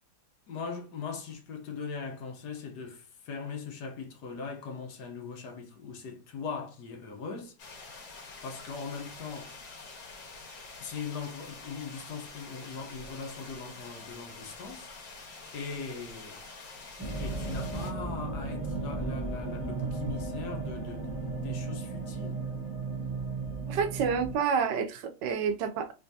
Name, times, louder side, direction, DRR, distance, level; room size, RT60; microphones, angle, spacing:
voice 1, 0.5-7.5 8.4-9.5 10.8-14.9 15.5-16.4 17.2-22.4, left 5 dB, 65° left, 1.3 m, -40 dB
sound 1, 7.6-17.9, left 3 dB, 85° left, 1.9 m, -47 dB
sound 2, 17.0-24.3, right 3 dB, 10° right, 1.0 m, -35 dB
voice 2, 23.7-25.9, right 6 dB, 75° right, 1.2 m, -29 dB
3.7 x 3.4 x 2.7 m
omnidirectional pair, 2.0 m